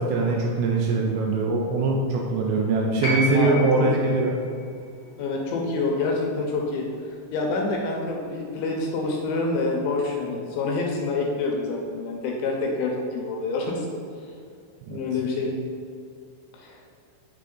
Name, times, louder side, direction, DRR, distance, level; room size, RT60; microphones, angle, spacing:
voice 1, 0.0-4.4 14.9-15.0, right 3 dB, 80° right, -1 dB, 2.6 m, -22 dB
sound 1, 3.0-7.2 8.4-8.5, equal, 60° left, 1.8 m, -33 dB
voice 2, 3.3-3.9 5.2-14.0 14.9-15.6 16.5-16.8, left 3 dB, 80° left, 0 dB, 2.7 m, -27 dB
7.6 x 3.8 x 3.7 m, 2.3 s
omnidirectional pair, 5.5 m